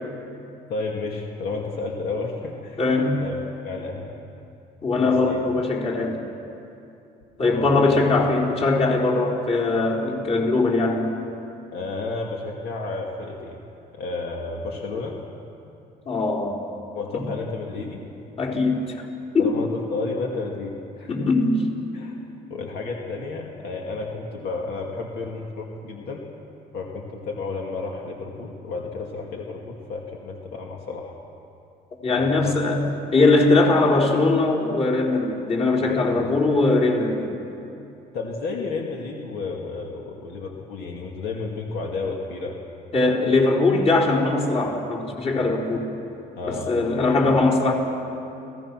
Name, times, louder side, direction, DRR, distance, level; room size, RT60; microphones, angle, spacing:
voice 1, 0.7-2.8 3.1-3.4 3.6-4.1 4.9-5.4 7.4-7.9 11.7-13.6 13.9-15.2 16.9-18.0 19.4-21.3 21.9-22.2 22.5-26.2 26.7-31.2 32.1-32.6 35.8-36.3 38.1-42.6 46.4-47.2, left 3 dB, 75° left, -1 dB, 2.5 m, -32 dB
voice 2, 2.8-3.2 4.8-6.2 7.4-11.2 16.1-16.6 17.1-17.2 18.4-19.1 19.3-19.6 21.1-21.7 32.0-37.3 42.9-45.8 46.4-47.7, left 3 dB, 40° left, -3 dB, 4.3 m, -21 dB
30.0 x 18.0 x 6.2 m, 2.8 s
cardioid pair, 110°, 17 cm